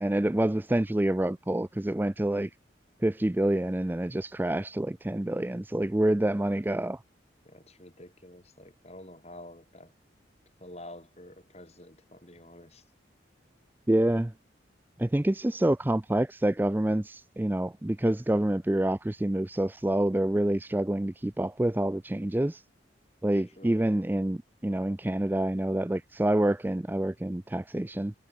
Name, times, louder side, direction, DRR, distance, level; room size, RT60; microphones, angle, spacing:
voice 1, 0.0-2.5 3.0-7.0 13.9-14.3 15.0-22.6 23.2-28.1, right 1 dB, 10° right, 0.4 m, -27 dB
voice 2, 7.4-9.9 10.6-12.8 23.3-23.9, left 1 dB, 35° left, 5.6 m, -48 dB
head